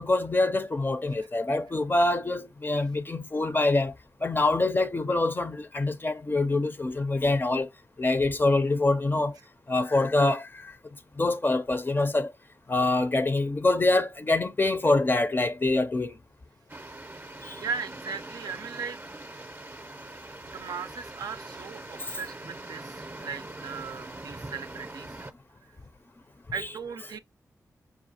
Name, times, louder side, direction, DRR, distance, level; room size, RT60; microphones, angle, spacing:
voice 1, 0.0-3.9 4.2-7.7 8.0-9.4 9.7-10.7 11.2-12.3 12.7-16.1 17.4-17.6 22.1-22.2 26.6-26.7, left 2 dB, 30° left, 0.4 m, -25 dB
sound 1, 16.7-25.3, right 2 dB, 30° right, 0.5 m, -42 dB
voice 2, 17.6-19.0 20.4-25.3 26.5-27.2, right 6 dB, 85° right, 0.4 m, -37 dB
5.0 x 2.3 x 2.7 m
cardioid pair, 50°, 7 cm